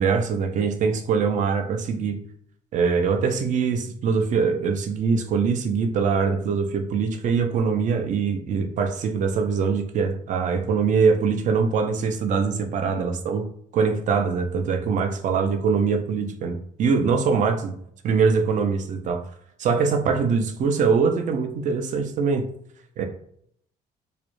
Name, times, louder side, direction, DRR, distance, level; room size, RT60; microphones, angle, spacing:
voice 1, 0.0-2.2 2.7-13.5 13.7-17.7 18.0-19.2 19.6-22.5 23.0-23.1, right 5 dB, 50° right, 5 dB, 0.4 m, -23 dB
2.4 x 2.1 x 2.9 m, 0.68 s
cardioid pair, 110°, 17 cm